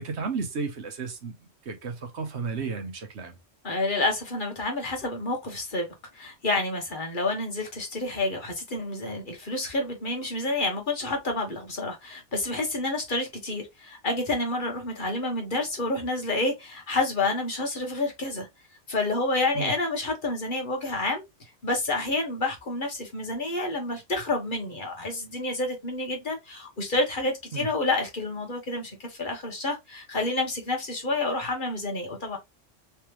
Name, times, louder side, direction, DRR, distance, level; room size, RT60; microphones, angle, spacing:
voice 1, 0.0-3.4 19.5-19.7 27.5-27.7, right 4 dB, 65° right, 1.1 m, -33 dB
voice 2, 3.6-5.9 6.1-18.5 18.9-21.2 21.6-32.4, left 2 dB, 45° left, 1.2 m, -29 dB
3.4 x 3.2 x 3.0 m
omnidirectional pair, 1.3 m